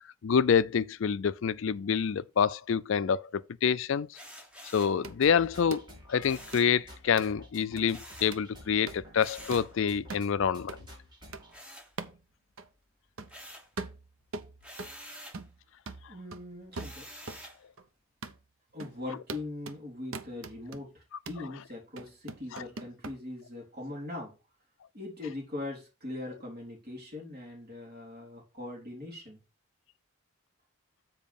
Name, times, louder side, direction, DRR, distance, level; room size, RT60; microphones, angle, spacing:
voice 1, 0.2-3.3 3.6-4.1 4.7-5.8 6.1-10.8 22.5-22.6, left 7 dB, 60° left, 0.4 m, -27 dB
sound 1, 4.1-5.0 6.2-6.8 7.9-8.4 9.2-9.7 11.5-12.4 12.8-13.8 14.6-15.4 16.7-17.6, equal, 5° right, 1.2 m, -48 dB
sound 2, 5.0-11.5, equal, 20° right, 2.8 m, -51 dB
sound 3, 5.0-5.2 5.7-5.9 6.5-6.6 7.2-7.3 7.8-7.9 8.3-8.5 8.9-9.0 9.5-9.7 10.1-10.3 10.7-10.8 11.3-11.4 12.0-12.2 12.6-12.7 13.2-13.4 13.8-15.0 15.3-15.6 15.9-17.5 17.8-17.9 18.2-18.4 18.8-19.0 19.3-19.8 20.1-20.8 21.3-21.5 22.0-23.2, right 3 dB, 65° right, 0.7 m, -41 dB
voice 2, 16.1-17.1 18.7-24.4 24.9-29.4, left 2 dB, 45° right, 3.7 m, -41 dB
7.3 x 4.6 x 5.3 m
head